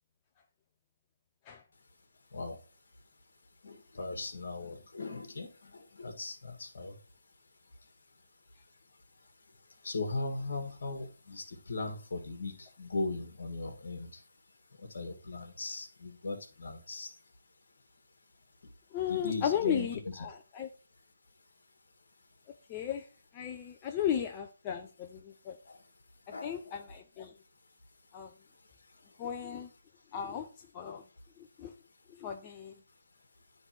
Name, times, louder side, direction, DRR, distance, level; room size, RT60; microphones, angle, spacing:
voice 1, 3.6-7.0 9.8-14.2 14.8-17.1 19.1-20.3 25.6-25.8 26.3-26.8, left 3 dB, 65° left, 5 dB, 1.5 m, -38 dB
voice 2, 18.9-20.7 22.7-23.0 23.3-25.2 25.5-25.6 26.4-27.3 28.1-28.3 29.2-29.7 30.1-30.5 30.7-31.0 31.6-31.7 32.2-32.7, left 9 dB, 25° left, 4 dB, 0.5 m, -35 dB
9.7 x 3.3 x 4.4 m, 0.36 s
figure-of-eight pair, 150°, 0 cm